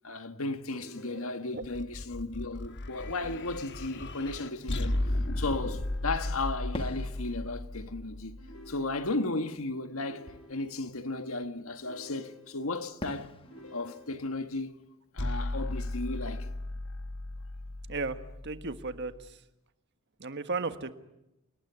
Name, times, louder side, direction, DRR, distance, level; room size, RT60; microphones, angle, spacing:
voice 1, 0.0-5.0 5.4-8.4 8.7-13.4 13.7-14.7 15.1-16.5, left 2 dB, 70° left, 1.7 m, -35 dB
sound 1, 0.7-1.8 3.2-4.2 5.3-6.4 8.4-9.4 10.0-10.9 11.8-12.8 13.4-14.5, left 2 dB, 85° left, 6.9 m, -51 dB
voice 2, 1.2-1.6 17.9-19.4 20.2-20.9, right 3 dB, 50° right, 1.5 m, -35 dB
sound 2, 1.6-8.9 15.2-19.3, left 1 dB, 50° left, 1.4 m, -35 dB
Fireworks, 3.9-5.9 6.7-12.1 13.0-17.7, left 1 dB, 25° left, 1.4 m, -49 dB
29.0 x 19.5 x 9.5 m
head